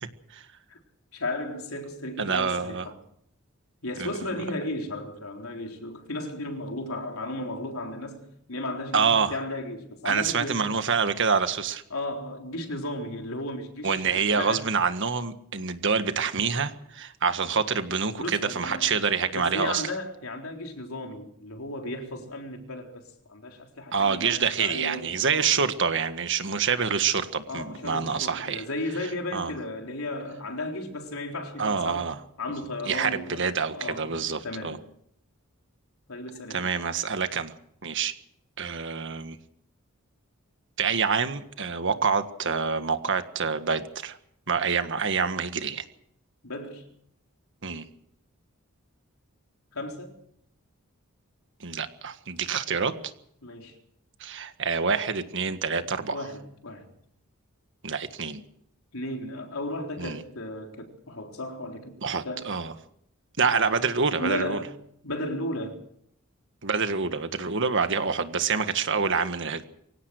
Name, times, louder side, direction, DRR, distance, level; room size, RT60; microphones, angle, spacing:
voice 1, 1.1-3.0 3.8-10.8 11.9-14.7 18.2-18.9 19.3-23.0 23.3-25.5 27.5-32.1 32.4-34.2 34.4-34.8 36.1-36.7 46.4-46.9 49.7-50.1 53.4-53.7 56.1-56.9 58.9-62.0 62.2-62.5 64.2-64.7 65.0-65.8, left 1 dB, 75° left, 4.0 m, -35 dB
voice 2, 2.2-2.9 4.0-4.1 8.9-9.3 10.0-11.8 13.8-19.9 23.9-28.6 29.3-29.5 31.6-32.2 32.8-34.8 36.5-37.5 37.8-38.1 38.6-39.4 40.8-44.2 44.5-45.8 47.6-47.9 51.6-53.1 54.2-56.2 57.8-58.4 60.0-60.2 62.0-62.7 63.4-64.6 66.6-69.6, right 5 dB, 60° right, 1.7 m, -26 dB
24.0 x 17.5 x 6.5 m
head